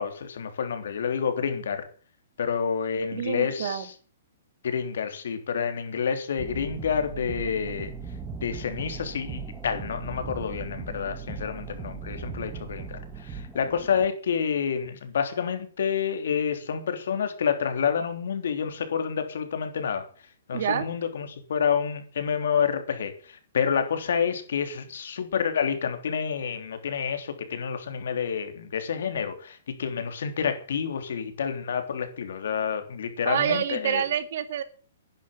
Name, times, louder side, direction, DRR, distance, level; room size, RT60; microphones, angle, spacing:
voice 1, 0.0-1.9 2.4-3.9 4.6-7.9 8.4-20.1 20.5-23.1 23.5-34.0, left 7 dB, 70° left, 8 dB, 3.4 m, -28 dB
voice 2, 3.1-3.9 20.5-20.9 33.2-34.6, right 9 dB, 55° right, 11 dB, 2.2 m, -27 dB
sound 1, 6.4-14.1, right 5 dB, 10° right, 1.6 m, -38 dB
11.5 x 10.5 x 7.3 m, 0.40 s
hypercardioid pair, 165°, 0 cm